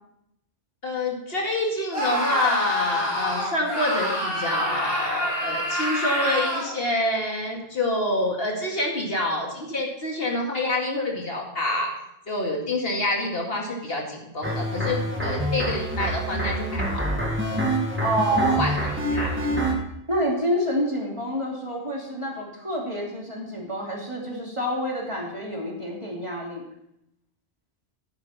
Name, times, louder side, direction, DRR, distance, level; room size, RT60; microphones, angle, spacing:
voice 1, 0.8-11.9 12.3-17.0 18.6-18.7 19.1-19.3, left 2 dB, 65° left, -1 dB, 2.4 m, -27 dB
Screaming, 1.9-6.8, equal, 25° left, 4.3 m, -27 dB
sound 1, 14.4-19.7, right 1 dB, 10° right, 1.9 m, -26 dB
voice 2, 18.0-18.6 20.1-26.6, equal, 30° right, -2 dB, 2.6 m, -28 dB
11.5 x 10.0 x 4.2 m, 0.78 s
omnidirectional pair, 1.1 m